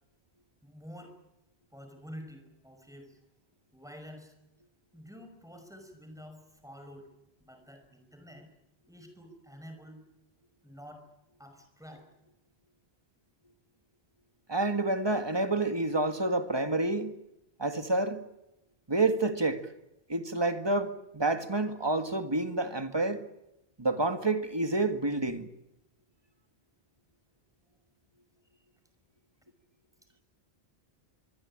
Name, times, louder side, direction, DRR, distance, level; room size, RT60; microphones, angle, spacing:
voice 1, 0.6-1.2 1.7-3.2 3.7-4.3 4.9-7.1 7.4-8.5 8.9-10.0 10.6-11.1 11.4-12.1, equal, 5° right, 5.7 m, -48 dB
voice 2, 14.5-17.2 17.6-18.2 18.9-19.6 20.1-23.2 23.8-25.5, right 2 dB, 25° right, 1.9 m, -28 dB
24.5 x 23.5 x 8.9 m
omnidirectional pair, 1.1 m